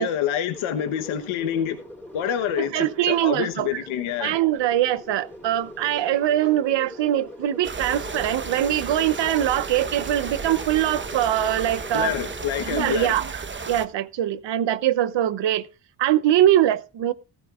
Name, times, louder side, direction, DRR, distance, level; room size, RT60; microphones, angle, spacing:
voice 1, 0.0-1.8 2.1-4.3 11.9-13.1, left 10 dB, 80° left, 1.1 m, -27 dB
sound 1, 0.5-13.0, left 1 dB, 5° left, 3.8 m, -42 dB
voice 2, 2.6-3.8 4.2-12.1 12.6-15.7 16.0-17.1, right 12 dB, 60° right, 0.8 m, -22 dB
sound 2, 7.6-13.8, right 4 dB, 25° right, 1.0 m, -34 dB
15.0 x 13.5 x 2.4 m
cardioid pair, 80°, 48 cm